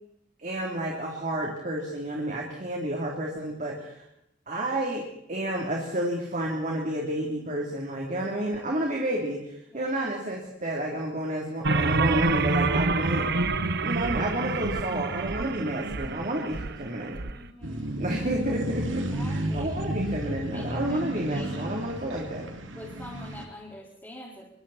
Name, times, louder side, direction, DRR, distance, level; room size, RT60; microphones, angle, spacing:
voice 1, 0.4-4.0 4.5-5.0 5.3-13.3 13.8-17.2 17.9-22.5, right 1 dB, 45° right, -1 dB, 3.4 m, -30 dB
voice 2, 7.2-7.7 9.7-9.9 15.7-16.5 17.3-18.1 19.1-19.7 20.5-21.7 22.7-24.5, left 1 dB, 10° left, -6 dB, 4.7 m, -45 dB
sound 1, 11.6-17.3, right 3 dB, 60° right, 1.0 m, -27 dB
sound 2, 17.6-23.5, right 1 dB, 90° right, 2.6 m, -32 dB
26.0 x 24.0 x 4.3 m, 0.80 s
head